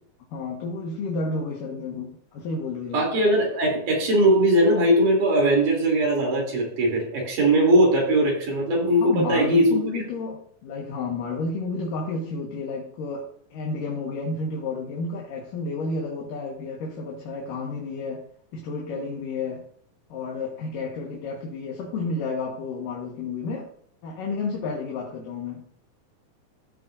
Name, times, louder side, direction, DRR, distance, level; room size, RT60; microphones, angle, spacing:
voice 1, 0.3-3.1 9.0-18.3 18.5-19.6 20.1-23.7 24.0-25.6, left 3 dB, 80° left, -2 dB, 3.2 m, -31 dB
voice 2, 2.9-9.7, right 1 dB, 80° right, -1 dB, 4.9 m, -20 dB
15.0 x 7.3 x 2.7 m, 0.64 s
omnidirectional pair, 3.8 m